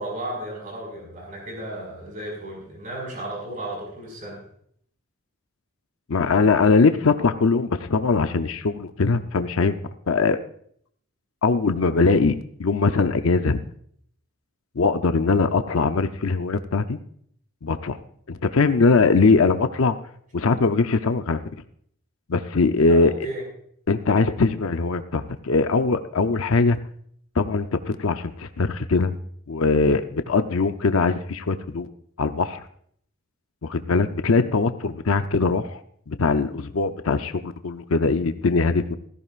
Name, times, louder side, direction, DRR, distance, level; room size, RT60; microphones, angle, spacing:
voice 1, 0.0-4.4 22.9-23.4, right 1 dB, 35° right, -1 dB, 5.5 m, -34 dB
voice 2, 6.1-9.7 10.1-10.4 11.4-12.3 12.6-13.6 14.8-17.0 17.6-18.0 18.3-20.0 20.3-21.4 22.3-23.1 23.9-26.8 27.4-29.1 29.5-31.9 32.2-32.6 33.6-35.8 36.1-39.0, left 4 dB, 70° left, 9 dB, 0.6 m, -21 dB
17.0 x 14.0 x 2.5 m, 0.63 s
head